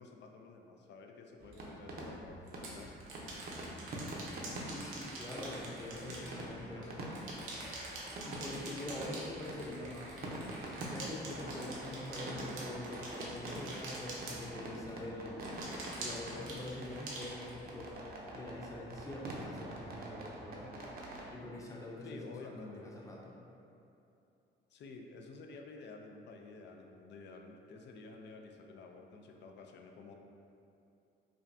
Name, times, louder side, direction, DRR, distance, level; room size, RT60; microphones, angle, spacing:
voice 1, 0.0-3.0 22.0-22.9 24.7-30.1, left 3 dB, 60° left, 3 dB, 0.4 m, -51 dB
sound 1, 1.4-21.3, right 1 dB, 50° right, 0.7 m, -45 dB
sound 2, 1.5-1.6 2.5-6.9 7.1-15.0 15.4-17.9, right 2 dB, 85° right, 0.7 m, -46 dB
voice 2, 4.6-6.9 8.2-10.2 10.9-15.4 16.0-17.9 18.3-20.7 21.3-22.2 22.7-23.4, left 1 dB, 15° left, -3 dB, 0.7 m, -44 dB
sound 3, 5.7-11.6, equal, 35° left, 1.0 m, -57 dB
5.0 x 2.2 x 2.6 m, 2.7 s
cardioid pair, 90°, 20 cm